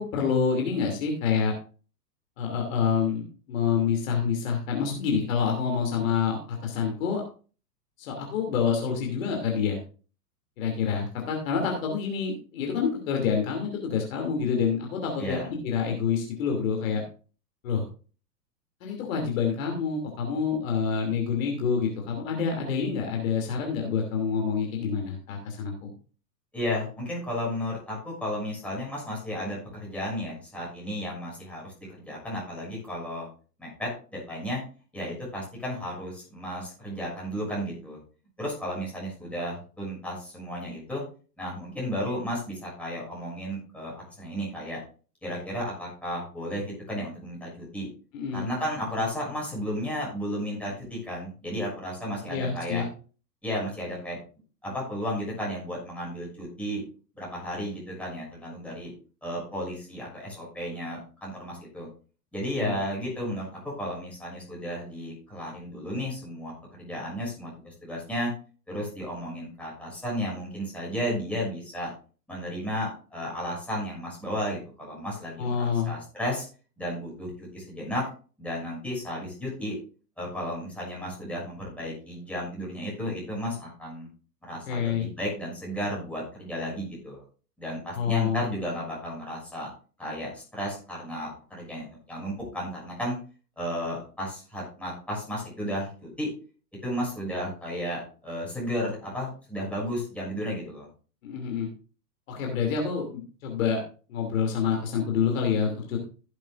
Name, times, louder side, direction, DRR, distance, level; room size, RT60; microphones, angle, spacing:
voice 1, 0.0-1.5 2.4-7.2 8.0-9.8 10.6-17.0 17.6-17.8 18.8-25.9 48.1-48.5 52.3-52.8 62.5-62.7 75.4-75.9 84.7-85.1 87.9-88.4 101.2-101.7 102.3-103.8 104.1-106.0, left 6 dB, 50° left, 1 dB, 2.9 m, -27 dB
voice 2, 15.2-15.5 26.5-33.3 33.6-34.6 34.9-38.0 38.4-41.0 41.4-44.8 45.2-47.9 48.3-52.8 53.4-54.2 54.6-56.8 57.2-58.9 59.2-61.9 62.3-66.5 66.8-68.3 68.7-71.9 72.3-76.4 76.8-78.0 78.4-79.7 80.2-84.1 84.4-87.2 87.6-89.7 90.0-93.2 93.6-96.3 96.8-100.9, equal, 5° left, -4 dB, 6.3 m, -33 dB
15.5 x 8.3 x 2.6 m, 0.37 s
figure-of-eight pair, 110°, 50 cm